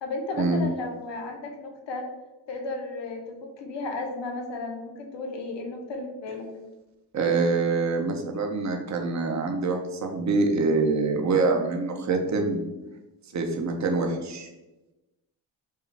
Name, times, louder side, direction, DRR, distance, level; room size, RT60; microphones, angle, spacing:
voice 1, 0.0-2.1 2.5-6.5, left 2 dB, 70° left, 2 dB, 0.9 m, -34 dB
voice 2, 7.1-12.6 13.3-14.5, right 3 dB, 40° right, 3 dB, 0.7 m, -25 dB
4.6 x 2.4 x 3.3 m, 1.1 s
cardioid pair, 75°, 44 cm